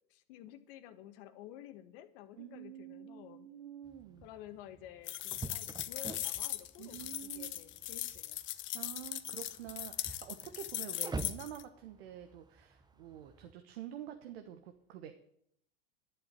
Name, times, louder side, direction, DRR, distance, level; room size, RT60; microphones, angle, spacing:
voice 1, 0.1-3.5 4.2-8.4, left 12 dB, 60° left, 9 dB, 1.5 m, -52 dB
voice 2, 2.4-4.3 6.8-7.5 8.7-15.1, right 10 dB, 70° right, 7 dB, 1.3 m, -48 dB
sound 1, 3.8-13.5, right 3 dB, 15° right, 0.9 m, -48 dB
sound 2, 5.1-11.6, left 14 dB, 40° left, 0.9 m, -39 dB
11.5 x 7.3 x 9.7 m, 0.73 s
hypercardioid pair, 110°, 31 cm